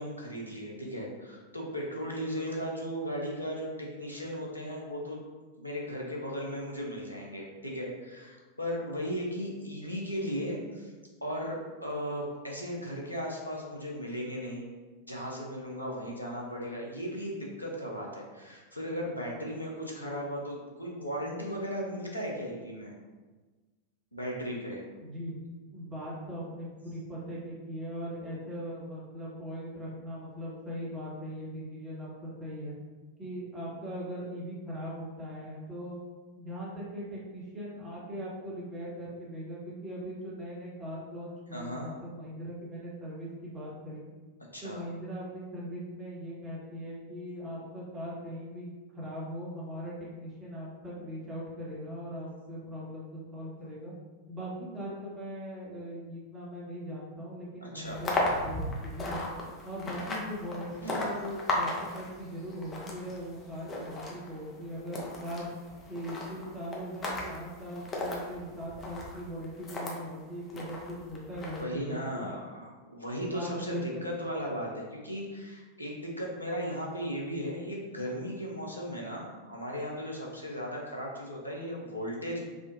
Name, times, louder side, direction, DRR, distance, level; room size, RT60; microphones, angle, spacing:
voice 1, 0.0-5.2 5.6-10.9 11.2-14.7 15.0-22.9 24.1-24.9 41.5-41.9 44.5-44.8 57.6-58.0 60.8-61.1 71.6-82.4, equal, 85° left, -2 dB, 0.5 m, -36 dB
voice 2, 25.0-25.4 25.7-32.7 33.2-36.0 36.3-44.0 44.6-48.7 48.9-53.9 54.3-59.3 59.6-65.5 65.9-72.3 73.3-74.0, equal, 20° right, -6 dB, 1.0 m, -40 dB
sound 1, 57.9-70.0 70.5-71.6, left 1 dB, 20° left, 0.5 m, -36 dB
3.5 x 2.1 x 2.5 m, 1.3 s
figure-of-eight pair, 90°, 0 cm